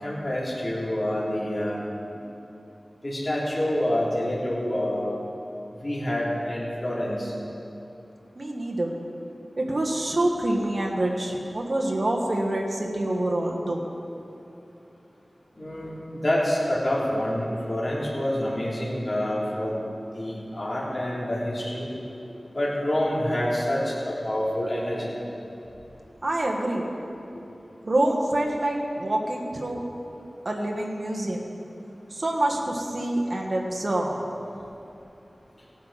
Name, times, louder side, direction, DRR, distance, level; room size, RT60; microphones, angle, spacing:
voice 1, 0.0-1.8 3.0-5.2 5.8-7.3 15.6-19.8 20.1-21.9 22.5-25.1, left 1 dB, 40° left, -7 dB, 3.3 m, -27 dB
voice 2, 8.3-8.9 9.6-13.8 22.2-22.4 26.2-26.9 27.8-29.8 30.4-31.4 32.1-34.2, right 1 dB, 55° right, 0 dB, 1.6 m, -26 dB
17.0 x 9.4 x 4.2 m, 2.9 s
wide cardioid pair, 50°, 0 cm